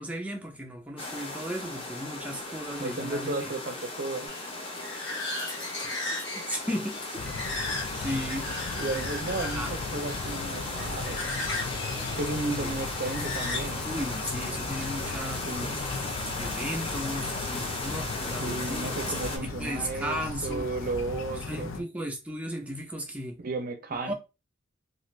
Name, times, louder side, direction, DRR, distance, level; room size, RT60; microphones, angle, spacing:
voice 1, 0.0-3.5 5.8-5.9 6.5-7.3 8.0-8.5 8.9-9.7 12.6-12.7 13.9-15.5 16.4-18.9 19.6-20.7 21.3-23.4 24.1-24.2, equal, 5° right, 0.6 m, -35 dB
sound 1, 1.0-19.4, left 2 dB, 30° left, 0.7 m, -36 dB
voice 2, 2.8-4.3 8.8-11.2 12.2-13.9 15.5-15.8 18.3-21.9 23.4-24.1, right 3 dB, 50° right, 0.6 m, -34 dB
sound 2, 4.3-14.3, left 2 dB, 65° left, 1.1 m, -38 dB
sound 3, 7.2-21.8, left 4 dB, 85° left, 0.4 m, -37 dB
2.5 x 2.5 x 3.1 m
head